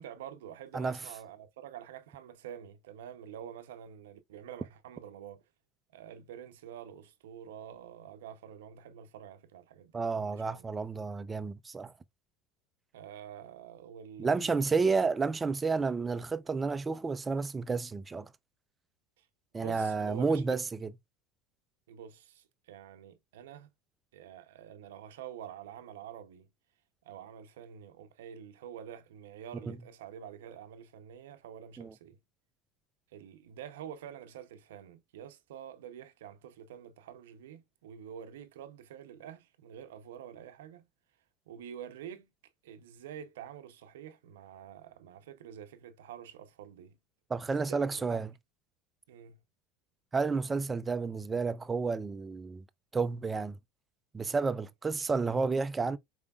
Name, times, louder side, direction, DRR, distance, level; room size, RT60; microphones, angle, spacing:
voice 1, 0.0-5.4 5.9-10.7 12.9-15.0 19.2-19.3 19.5-20.4 21.9-23.7 24.1-26.5 27.0-32.2 33.1-40.8 41.5-42.3 42.6-47.0 47.4-48.2 49.1-49.4, right 9 dB, 90° right, 0.6 m, -47 dB
voice 2, 9.9-11.9 14.2-18.3 19.5-20.9 29.7-29.8 31.8-31.9 47.3-48.3 50.1-52.6 52.9-53.6 54.1-56.0, right 4 dB, 20° right, 0.5 m, -31 dB
4.8 x 3.5 x 2.3 m
supercardioid pair, 105°, 0 cm